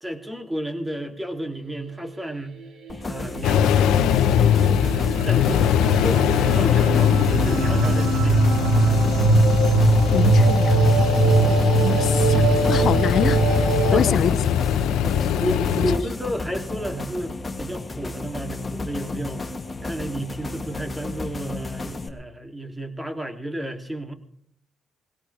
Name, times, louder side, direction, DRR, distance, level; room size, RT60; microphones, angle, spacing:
voice 1, 0.0-2.6 3.1-4.1 5.2-8.6 11.9-12.2 13.7-19.5 19.8-24.1, right 1 dB, 10° right, 2.8 m, -32 dB
sound 1, 2.6-14.0, right 3 dB, 70° right, 5.3 m, -21 dB
sound 2, 2.9-22.1, left 2 dB, 25° left, 2.2 m, -33 dB
sound 3, 3.4-16.0, left 9 dB, 90° left, 1.0 m, -21 dB
voice 2, 10.1-11.1 11.8-14.3, left 8 dB, 60° left, 0.6 m, -26 dB
21.5 x 17.5 x 3.4 m
cardioid pair, 90°, 0 cm